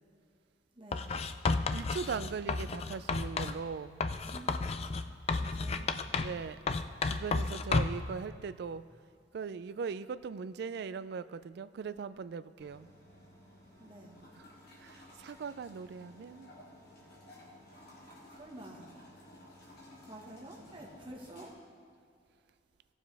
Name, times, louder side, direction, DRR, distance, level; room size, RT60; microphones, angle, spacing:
voice 1, 0.7-1.1 4.3-4.5 5.3-5.9 13.8-14.2 18.3-18.9 20.1-21.6, right 1 dB, 30° right, -1 dB, 1.4 m, -49 dB
Writing, 0.9-3.6 4.0-6.4 6.7-8.1, left 4 dB, 35° left, 0.4 m, -32 dB
voice 2, 1.7-4.0 6.2-6.7 7.1-8.8 9.3-12.9 14.4-14.5 14.8-16.5, right 5 dB, 65° right, 14 dB, 0.3 m, -40 dB
sound 1, 12.6-21.5, left 1 dB, 60° left, 2.5 m, -55 dB
17.0 x 7.2 x 3.4 m, 2.3 s
head